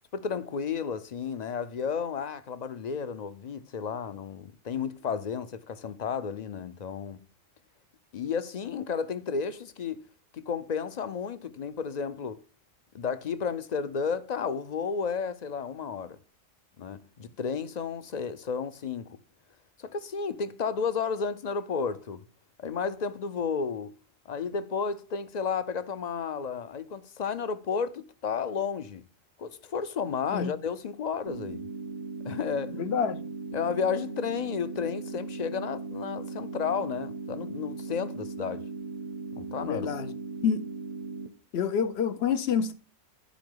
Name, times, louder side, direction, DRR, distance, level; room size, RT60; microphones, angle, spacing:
voice 1, 0.1-7.3 8.1-10.1 10.3-12.4 12.9-16.2 16.8-19.2 19.8-22.2 22.6-23.9 24.3-29.1 29.4-31.7 32.2-32.8 33.5-38.6 39.3-39.9, left 6 dB, 50° left, 0.6 m, -32 dB
sound 1, 31.3-41.3, right 4 dB, 45° right, 0.7 m, -38 dB
voice 2, 32.7-33.2 39.6-40.1 40.4-40.6 41.5-42.7, left 7 dB, 65° left, 1.0 m, -27 dB
10.5 x 4.9 x 3.7 m
omnidirectional pair, 1.2 m